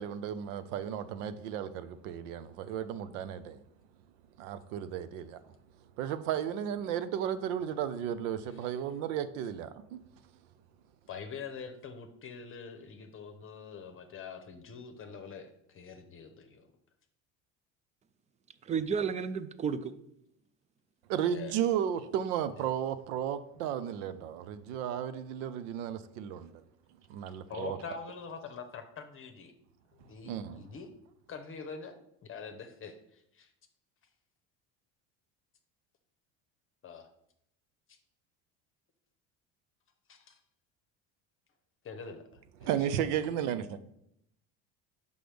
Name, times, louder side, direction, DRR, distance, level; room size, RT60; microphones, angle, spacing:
voice 1, 0.0-3.6 4.4-5.4 6.0-10.0 21.1-26.6 27.1-27.8 30.3-30.6 42.6-43.8, right 9 dB, 85° right, 0.6 m, -34 dB
voice 2, 11.1-16.7 21.3-21.6 27.5-29.5 30.0-30.9 31.3-33.5 36.8-37.1 40.1-40.4 41.8-42.2 42.6-42.8, left 5 dB, 35° left, 0.8 m, -44 dB
voice 3, 18.6-19.9, right 6 dB, 20° right, 0.3 m, -32 dB
6.0 x 5.3 x 3.4 m
supercardioid pair, 100°, 36 cm